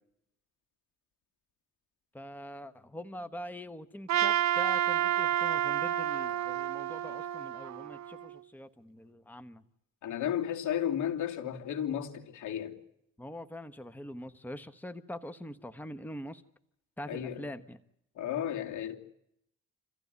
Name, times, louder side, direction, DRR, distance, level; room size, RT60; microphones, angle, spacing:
voice 1, 2.1-9.6 13.2-16.4 17.0-17.8, left 1 dB, 5° left, 1.2 m, -43 dB
Trumpet, 4.1-8.4, right 11 dB, 65° right, 1.4 m, -30 dB
voice 2, 10.0-12.8 17.1-17.5 18.2-19.0, left 10 dB, 75° left, 3.0 m, -33 dB
27.5 x 15.0 x 9.5 m
cardioid pair, 90°, 30 cm